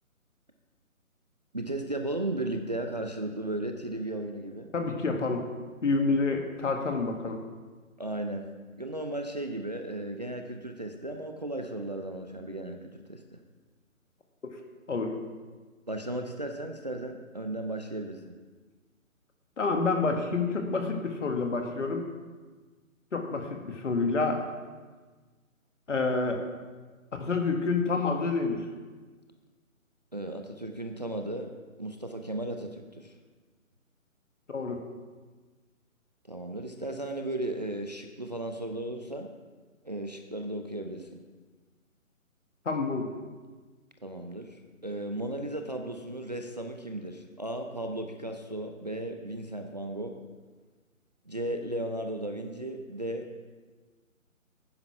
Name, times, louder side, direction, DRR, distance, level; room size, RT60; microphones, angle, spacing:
voice 1, 1.5-4.7 8.0-8.5 8.8-13.4 15.9-18.3 30.1-31.5 31.8-33.2 36.3-39.3 39.8-41.2 44.0-50.2 51.3-53.4, right 1 dB, 30° right, 4 dB, 0.6 m, -35 dB
voice 2, 4.7-5.5 5.8-7.4 14.9-15.1 19.6-22.0 23.1-24.5 25.9-26.4 27.2-28.6 34.5-34.8 42.7-43.1, left 4 dB, 60° left, 3 dB, 1.9 m, -28 dB
9.9 x 9.6 x 5.8 m, 1.4 s
figure-of-eight pair, 160°, 42 cm